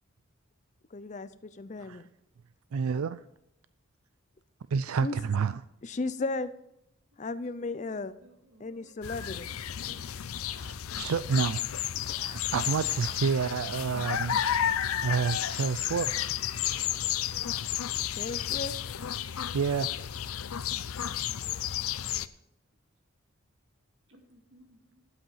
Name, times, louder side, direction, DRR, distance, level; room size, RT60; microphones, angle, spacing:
voice 1, 0.9-2.0 5.0-5.2 5.8-6.5 7.2-8.2 8.6-9.5 18.1-18.8, left 3 dB, 35° left, 14 dB, 0.5 m, -35 dB
voice 2, 2.7-3.2 4.7-5.6 10.6-11.6 12.1-14.4 15.0-16.3 19.5-19.9, right 5 dB, 85° right, 15 dB, 0.4 m, -29 dB
voice 3, 8.2-8.9 9.5-9.6 9.9-10.0 10.5-10.7 15.6-15.7 16.6-16.8 18.2-18.3 21.1-21.2 24.1-25.0, right 1 dB, 65° right, 4 dB, 2.1 m, -58 dB
sound 1, 9.0-22.3, left 10 dB, 90° left, 0.5 m, -32 dB
11.5 x 8.1 x 5.6 m, 0.81 s
head